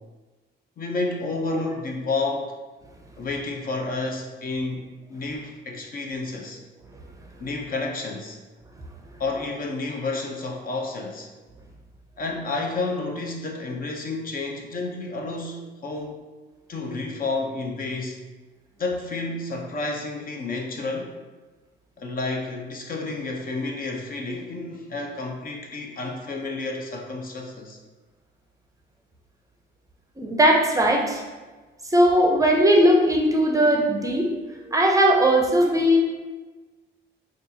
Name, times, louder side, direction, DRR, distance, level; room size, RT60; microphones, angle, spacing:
voice 1, 0.8-2.5 3.2-6.6 7.4-8.4 9.2-11.3 12.2-16.2 16.7-18.2 18.8-21.1 22.0-27.8, left 3 dB, 45° left, 1 dB, 0.6 m, -30 dB
voice 2, 30.2-31.2 31.9-34.3 34.7-36.0, equal, 15° right, 0 dB, 0.6 m, -19 dB
5.2 x 2.4 x 2.7 m, 1.3 s
cardioid pair, 90°, 20 cm